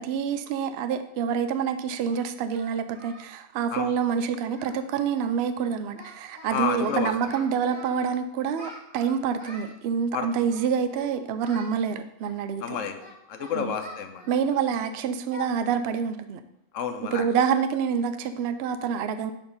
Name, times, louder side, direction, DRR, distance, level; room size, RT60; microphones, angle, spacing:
voice 1, 0.0-12.6 13.5-13.7 14.3-16.4 17.1-19.3, right 7 dB, 65° right, 9 dB, 0.7 m, -27 dB
Singing, 1.3-1.4 2.1-3.3 3.6-3.8 4.1-4.2 4.4-4.8 5.1-5.3 5.6-6.5 6.8-8.1 8.5-9.7 10.4-11.1 11.4-11.7 12.2-14.8 15.3-15.5 15.9-16.0 16.5-16.6 17.0-17.3, equal, 45° right, 3.1 m, -46 dB
voice 2, 6.5-7.1 10.1-10.5 12.6-13.0 13.3-14.3 16.7-17.2, left 7 dB, 80° left, 7 dB, 1.1 m, -30 dB
6.5 x 4.5 x 5.3 m, 0.80 s
omnidirectional pair, 1.3 m